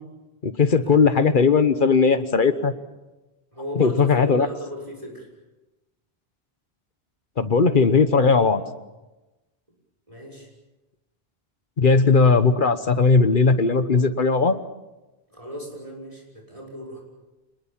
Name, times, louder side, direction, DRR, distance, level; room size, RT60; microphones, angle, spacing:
voice 1, 0.4-2.7 3.8-4.5 7.4-8.6 11.8-14.6, left 4 dB, 55° left, 12 dB, 1.3 m, -18 dB
voice 2, 3.5-5.3 8.0-8.5 10.1-10.5 15.3-17.0, equal, 35° right, 0 dB, 6.1 m, -36 dB
26.5 x 20.5 x 7.4 m, 1.1 s
omnidirectional pair, 1.0 m